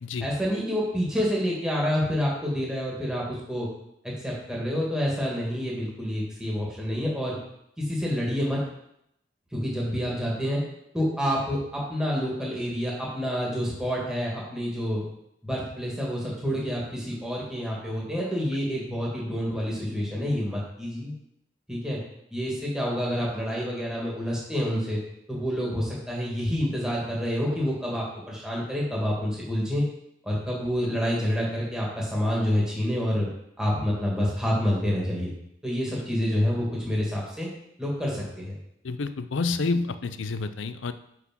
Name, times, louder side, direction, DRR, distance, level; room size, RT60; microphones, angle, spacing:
voice 1, 0.2-3.7 4.2-7.4 7.8-8.6 9.5-10.6 10.9-15.0 15.4-21.1 21.7-22.0 22.3-25.0 25.3-29.8 30.2-33.3 33.6-35.3 35.6-37.5 37.8-38.5, equal, 5° right, -5 dB, 1.9 m, -28 dB
voice 2, 38.8-40.9, left 3 dB, 90° left, 11 dB, 0.5 m, -29 dB
6.0 x 5.9 x 5.9 m, 0.78 s
head